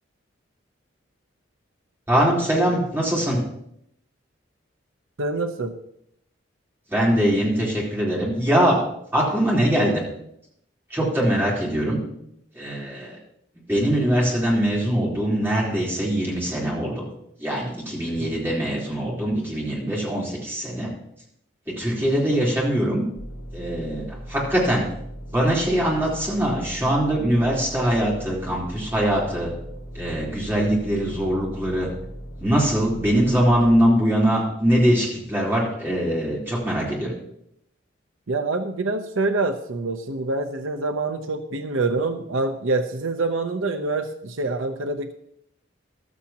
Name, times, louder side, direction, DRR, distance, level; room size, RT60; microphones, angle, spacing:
voice 1, 2.1-3.4 6.9-8.8 9.1-10.0 10.9-12.0 12.5-13.2 13.7-17.1 17.4-20.9 21.8-23.0 23.5-24.9 25.3-29.5 29.9-31.9 32.4-37.1, equal, 10° right, -5 dB, 3.9 m, -22 dB
voice 2, 5.2-5.7 18.2-18.4 38.3-45.1, right 3 dB, 80° right, 7 dB, 0.8 m, -26 dB
sound 1, 23.2-33.8, equal, 75° left, 4.5 m, -38 dB
14.5 x 13.0 x 3.0 m, 0.74 s
head